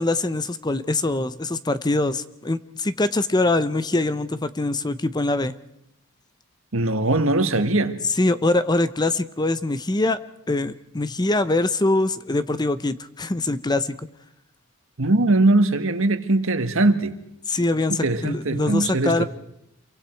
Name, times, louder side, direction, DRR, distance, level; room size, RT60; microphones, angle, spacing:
voice 1, 0.0-5.5 8.2-10.2 10.5-13.9 17.5-19.2, left 2 dB, 20° left, 0.7 m, -23 dB
voice 2, 6.7-8.0 15.0-17.1 17.9-19.3, right 2 dB, 65° right, 1.7 m, -21 dB
28.0 x 23.5 x 4.6 m
head